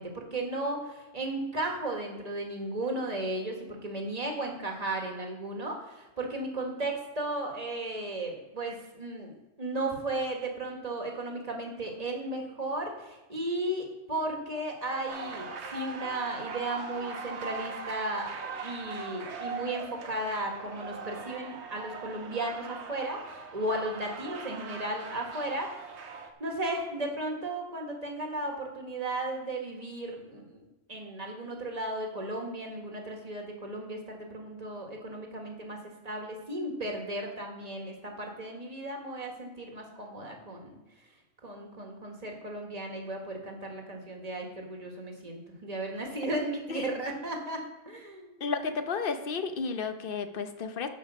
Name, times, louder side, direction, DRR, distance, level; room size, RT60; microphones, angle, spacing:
voice 1, 0.0-25.8 26.4-30.6 30.9-35.8 36.0-40.8 41.4-48.4, right 1 dB, 30° right, 1 dB, 1.6 m, -35 dB
sound 1, 15.1-26.3, right 4 dB, 65° right, 1.2 m, -40 dB
voice 2, 48.4-50.9, left 5 dB, 50° left, 8 dB, 0.9 m, -32 dB
9.6 x 5.1 x 6.6 m, 1.1 s
omnidirectional pair, 1.3 m